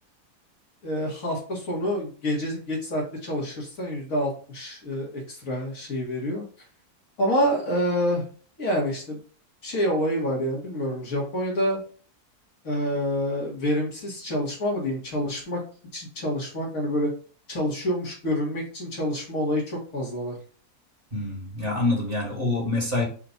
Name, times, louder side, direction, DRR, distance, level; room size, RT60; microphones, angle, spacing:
voice 1, 0.8-6.5 7.2-8.2 8.6-9.2 9.6-11.8 12.6-15.6 15.9-17.1 17.5-20.4, equal, 60° left, -2 dB, 1.9 m, -27 dB
voice 2, 21.1-23.1, left 2 dB, 35° right, -3 dB, 1.9 m, -26 dB
4.7 x 2.5 x 3.9 m, 0.41 s
omnidirectional pair, 1.7 m